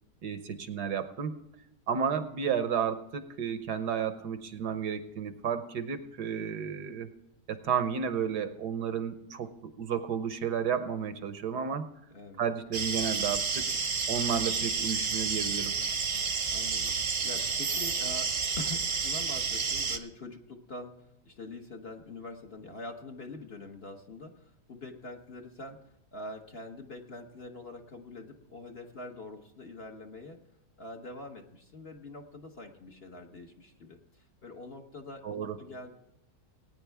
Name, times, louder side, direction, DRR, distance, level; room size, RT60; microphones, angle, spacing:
voice 1, 0.2-1.4 1.9-7.1 7.5-11.9 12.4-13.7 14.1-15.7 35.2-35.6, right 7 dB, 70° right, 10 dB, 1.4 m, -32 dB
sound 1, 12.7-20.0, right 5 dB, 45° right, 1.0 m, -30 dB
voice 2, 16.5-25.8 26.1-30.4 30.8-35.9, left 2 dB, 40° left, 2 dB, 1.1 m, -44 dB
19.0 x 9.7 x 3.5 m, 0.82 s
omnidirectional pair, 1.9 m